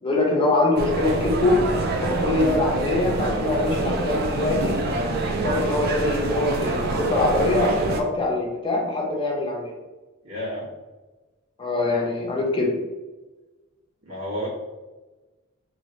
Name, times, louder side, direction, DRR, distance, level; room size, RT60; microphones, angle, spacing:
voice 1, 0.0-1.6 2.0-4.8 5.4-9.7 11.6-12.7, left 2 dB, 25° left, -1 dB, 0.6 m, -23 dB
sound 1, 0.8-8.0, right 2 dB, 45° right, 0.3 m, -26 dB
voice 2, 10.2-10.6 14.0-14.5, equal, 85° right, -9 dB, 1.4 m, -30 dB
3.0 x 2.3 x 2.8 m, 1.2 s
head